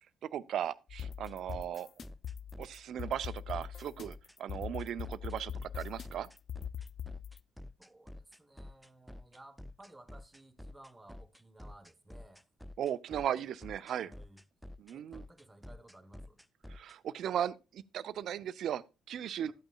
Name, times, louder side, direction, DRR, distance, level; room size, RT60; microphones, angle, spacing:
voice 1, 0.2-1.9 2.6-6.3 12.8-14.1 14.8-15.2 16.7-19.5, right 10 dB, 60° right, 0.5 m, -37 dB
sound 1, 0.9-7.4, left 8 dB, 50° left, 0.4 m, -42 dB
sound 2, 1.0-17.0, left 1 dB, ahead, 0.5 m, -49 dB
voice 2, 7.8-12.5 14.0-14.4 14.9-16.4, right 1 dB, 15° right, 1.4 m, -57 dB
12.5 x 8.8 x 2.3 m
figure-of-eight pair, 45°, 0 cm